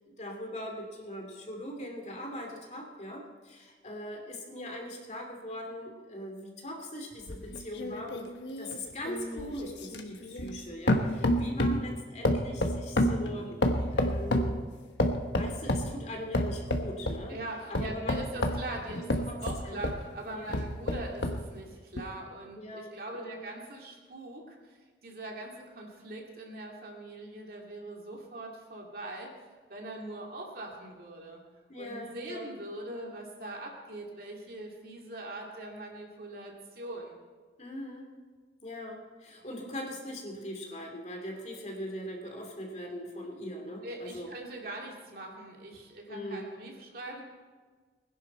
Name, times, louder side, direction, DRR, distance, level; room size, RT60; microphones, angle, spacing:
voice 1, 0.2-8.3 8.6-14.6 15.3-17.4 17.7-18.2 18.9-19.4 19.6-19.8 20.3-20.6 22.6-23.4 31.7-32.5 37.6-38.1 38.6-44.3 46.1-46.4, left 1 dB, 40° left, 2 dB, 2.5 m, -41 dB
sound 1, 7.3-10.6 10.9-11.9 12.2-14.6 15.0-15.9 16.3-17.2 17.7-20.0 20.5-21.4 22.0-22.1, left 1 dB, 85° left, 1.3 m, -29 dB
voice 2, 17.3-29.3 29.7-31.4 31.8-37.2 43.8-47.2, right 2 dB, 55° right, 0 dB, 2.5 m, -42 dB
20.5 x 11.0 x 4.4 m, 1.5 s
head